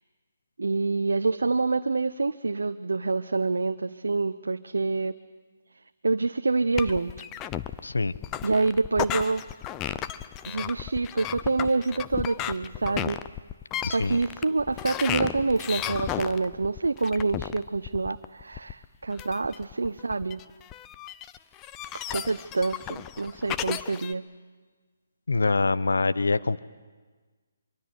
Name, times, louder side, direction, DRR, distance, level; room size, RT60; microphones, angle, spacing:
voice 1, 0.6-5.2 6.0-7.3 8.4-9.4 10.5-13.2 13.9-20.4 22.1-24.3, right 3 dB, 80° right, 9 dB, 0.7 m, -27 dB
sound 1, 6.8-24.1, left 12 dB, 20° left, 0.7 m, -34 dB
voice 2, 7.8-8.1 13.8-14.2 25.3-26.6, left 3 dB, 80° left, 15 dB, 0.9 m, -24 dB
24.5 x 23.5 x 8.1 m, 1.4 s
figure-of-eight pair, 145°, 0 cm